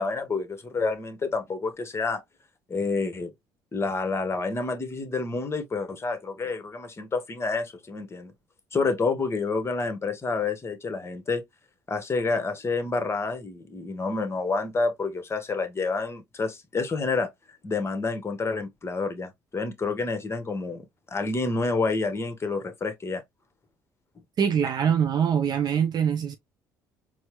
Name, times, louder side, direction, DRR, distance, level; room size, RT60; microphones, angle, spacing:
voice 1, 0.0-2.2 2.7-3.3 3.7-8.3 8.7-11.4 11.9-17.3 17.6-23.2, left 3 dB, 30° left, 1.0 m, -28 dB
voice 2, 24.4-26.4, right 8 dB, 50° right, 0.5 m, -23 dB
4.3 x 2.0 x 3.0 m
hypercardioid pair, 60°, 9 cm